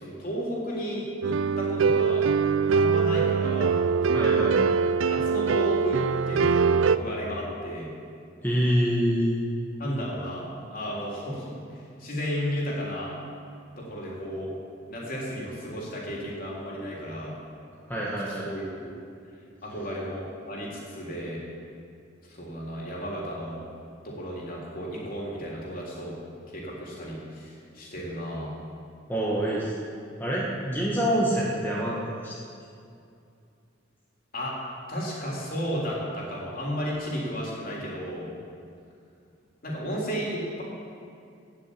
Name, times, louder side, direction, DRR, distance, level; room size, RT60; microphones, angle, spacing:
voice 1, 0.0-2.2 2.7-3.8 5.1-7.9 9.8-10.4 10.7-13.1 13.8-14.5 14.9-17.4 18.3-18.7 19.6-21.4 22.3-23.6 24.0-26.1 26.5-28.6 34.3-34.6 34.9-38.3 39.6-40.6, equal, 45° left, -4 dB, 3.5 m, -33 dB
sound 1, 1.2-7.0, right 5 dB, 75° right, 0.4 m, -23 dB
voice 2, 4.1-4.7 8.4-9.4 17.9-18.5 29.1-29.7 30.2-32.3, equal, 10° left, -6 dB, 1.8 m, -26 dB
16.5 x 6.5 x 8.7 m, 2.4 s
head